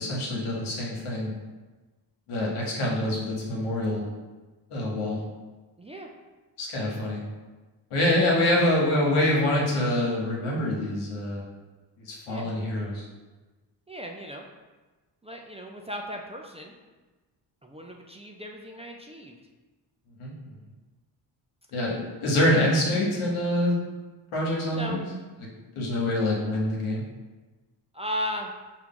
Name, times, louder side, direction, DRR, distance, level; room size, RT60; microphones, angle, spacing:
voice 1, 0.0-1.3 2.3-4.0 4.7-5.2 6.6-7.2 7.9-11.4 12.0-13.0 20.2-20.3 21.7-23.8 24.3-25.0 25.7-27.0, left 1 dB, 85° left, -3 dB, 1.1 m, -25 dB
voice 2, 5.8-6.1 8.3-8.4 12.3-12.5 13.9-14.4 15.2-16.7 17.6-19.4 24.7-25.0 27.9-28.5, equal, 15° right, 1 dB, 0.3 m, -36 dB
4.5 x 2.4 x 3.6 m, 1.2 s
supercardioid pair, 50°, 49 cm